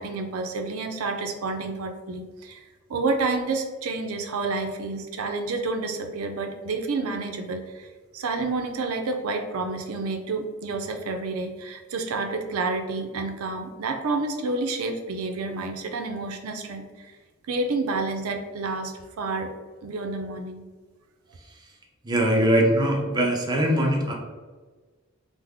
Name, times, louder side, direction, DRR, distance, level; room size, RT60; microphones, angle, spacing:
voice 1, 0.0-2.6 2.9-7.9 8.1-17.1 17.5-19.5 19.8-20.6, right 3 dB, 90° right, 5 dB, 0.4 m, -29 dB
voice 2, 22.0-24.1, right 1 dB, 20° right, 0 dB, 0.4 m, -21 dB
3.4 x 2.0 x 3.5 m, 1.4 s
head